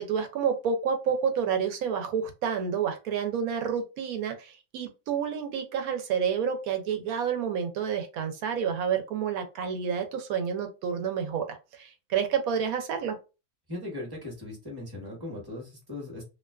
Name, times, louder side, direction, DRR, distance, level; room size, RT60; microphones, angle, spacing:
voice 1, 0.0-13.2, right 7 dB, 80° right, 6 dB, 1.0 m, -29 dB
voice 2, 13.7-16.2, left 2 dB, 20° right, -2 dB, 0.9 m, -38 dB
2.4 x 2.3 x 2.2 m, 0.29 s
omnidirectional pair, 1.6 m